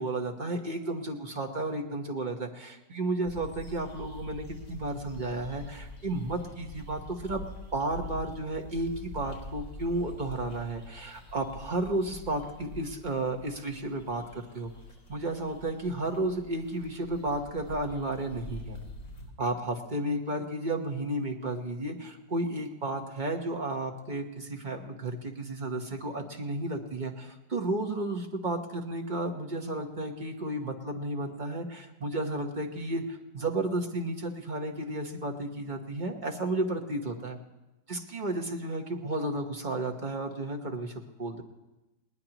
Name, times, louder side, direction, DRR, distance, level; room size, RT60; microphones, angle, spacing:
voice 1, 0.0-7.4 7.7-14.2 14.5-14.7 15.1-18.8 19.4-37.4 37.9-40.9 41.2-41.4, right 2 dB, 30° right, 2 dB, 1.1 m, -33 dB
sound 1, 3.3-19.3, left 1 dB, 50° left, 4.6 m, -45 dB
20.5 x 19.0 x 3.0 m, 1.0 s
omnidirectional pair, 2.0 m